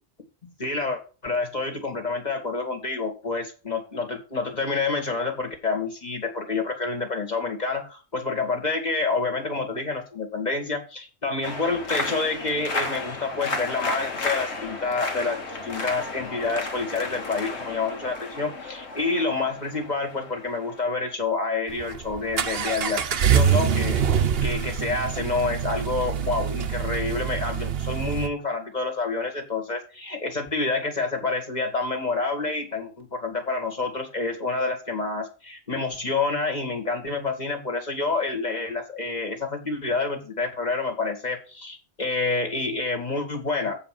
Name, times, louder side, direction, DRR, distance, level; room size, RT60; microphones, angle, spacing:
voice 1, 0.4-43.8, left 3 dB, 40° left, 4 dB, 2.0 m, -28 dB
sound 1, 11.4-21.1, left 3 dB, 75° left, 1.9 m, -33 dB
Accelerating revving vroom, 21.7-28.3, right 8 dB, 60° right, 1.0 m, -25 dB
7.9 x 5.0 x 7.4 m, 0.35 s
omnidirectional pair, 1.2 m